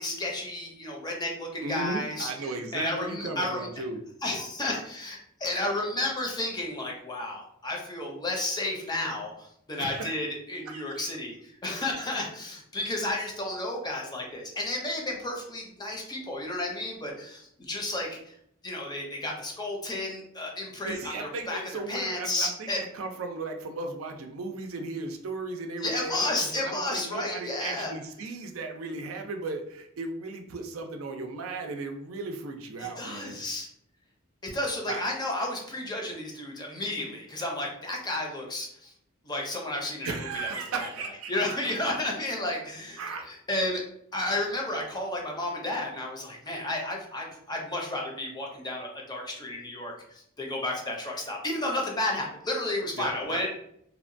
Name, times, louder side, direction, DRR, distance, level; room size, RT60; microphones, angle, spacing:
voice 1, 0.0-2.3 2.7-3.7 4.2-18.2 18.6-21.6 21.9-22.8 25.8-27.9 32.8-33.7 34.4-38.9 39.2-40.5 40.8-40.9 41.3-43.8 44.1-53.5, left 1 dB, 20° left, 0 dB, 0.5 m, -32 dB
voice 2, 1.6-4.0 9.8-10.1 10.7-11.0 20.8-33.3 34.9-35.0 40.0-41.3 43.0-43.2 53.0-53.4, right 3 dB, 80° right, 4 dB, 0.4 m, -36 dB
2.8 x 2.1 x 2.5 m, 0.72 s
head